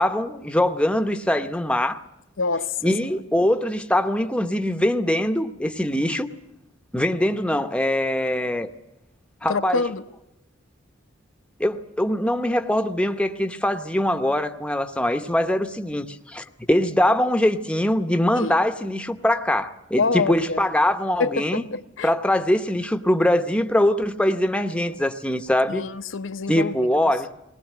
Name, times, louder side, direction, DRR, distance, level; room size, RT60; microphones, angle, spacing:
voice 1, 0.0-2.0 2.8-6.3 6.9-8.7 9.4-9.8 11.6-21.6 22.0-25.9 26.5-27.3, left 1 dB, 5° left, 0.8 m, -22 dB
voice 2, 2.4-2.8 9.5-10.0 18.4-18.6 20.0-20.7 21.2-22.1 25.7-27.0, left 4 dB, 80° left, 0.8 m, -26 dB
20.0 x 19.0 x 9.1 m
head